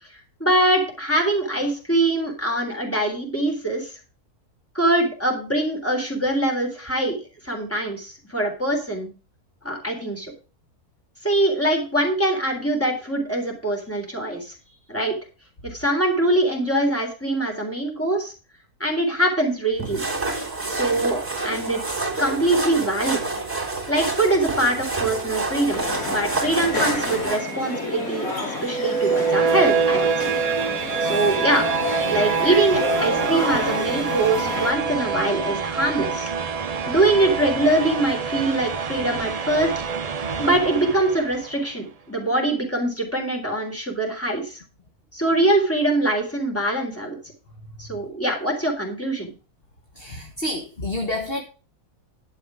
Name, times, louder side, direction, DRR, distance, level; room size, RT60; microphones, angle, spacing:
voice 1, 0.4-3.9 4.7-7.2 7.4-9.1 9.6-10.3 11.2-14.5 14.9-15.1 15.6-18.3 18.8-20.1 20.7-23.2 23.9-30.3 31.0-31.7 32.1-36.3 36.9-39.8 40.4-44.6 45.1-47.2 47.8-49.3, right 1 dB, 10° left, 1 dB, 3.8 m, -23 dB
sound 1, 19.8-27.4, right 3 dB, 10° right, 3.3 m, -28 dB
sound 2, 25.7-34.7, left 2 dB, 60° left, 4.3 m, -29 dB
sound 3, 28.6-41.6, right 5 dB, 65° right, 0.3 m, -25 dB
voice 2, 50.0-51.4, left 1 dB, 40° left, 3 dB, 1.7 m, -28 dB
11.5 x 7.9 x 4.9 m, 0.35 s
omnidirectional pair, 1.6 m